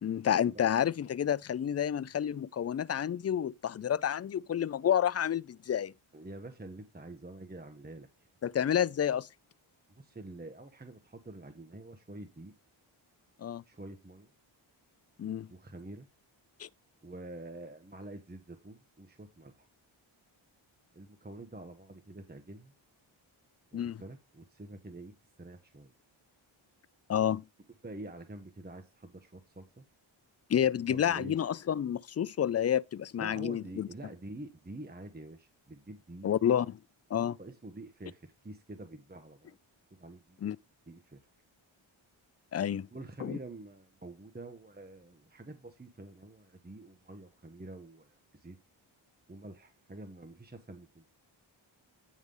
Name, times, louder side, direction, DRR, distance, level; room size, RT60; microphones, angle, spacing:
voice 1, 0.0-5.9 8.4-9.3 13.4-13.6 15.2-15.5 16.6-16.7 23.7-24.0 27.1-27.4 30.5-33.9 36.2-36.8 37.1-37.4 40.4-40.6 42.5-42.9 43.2-43.4, left 9 dB, 35° left, 0.4 m, -29 dB
voice 2, 6.1-8.3 10.0-12.5 13.7-14.3 15.5-16.1 17.0-19.7 20.9-22.7 23.7-25.9 27.8-29.8 30.7-31.3 33.1-36.3 37.1-39.6 40.0-40.4 40.9-41.2 42.9-48.6 49.3-51.0, right 2 dB, 20° right, 1.1 m, -47 dB
9.5 x 3.4 x 5.4 m
cardioid pair, 45°, 49 cm